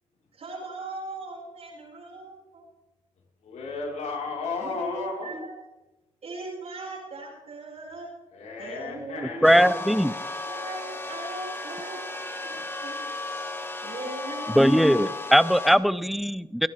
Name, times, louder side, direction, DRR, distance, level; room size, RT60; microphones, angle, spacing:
voice 1, 0.3-2.6 4.6-5.5 6.2-8.1 8.6-9.9 10.4-15.2, right 3 dB, 60° right, -6 dB, 6.5 m, -40 dB
voice 2, 3.4-5.4 8.3-9.6 12.5-12.6, left 4 dB, 70° left, -2 dB, 5.2 m, -34 dB
sound 1, 9.4-15.8, left 2 dB, 20° left, 2.4 m, -34 dB
voice 3, 9.4-10.1 14.6-16.7, equal, ahead, 16 dB, 0.8 m, -20 dB
25.0 x 11.5 x 3.7 m, 1.0 s
supercardioid pair, 55°, 12 cm